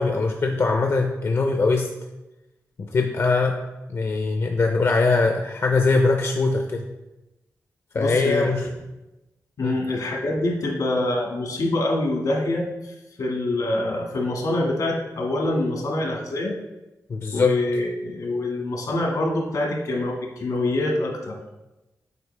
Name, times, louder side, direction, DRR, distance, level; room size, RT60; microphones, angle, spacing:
voice 1, 0.0-1.9 2.8-3.6 3.9-6.8 7.9-8.7 9.6-9.8 17.1-17.6, left 3 dB, 50° left, 3 dB, 0.5 m, -21 dB
voice 2, 7.9-8.5 9.6-16.5 17.3-21.4, left 2 dB, 80° left, -1 dB, 1.7 m, -25 dB
8.1 x 4.5 x 3.3 m, 1.0 s
wide cardioid pair, 100°, 6 cm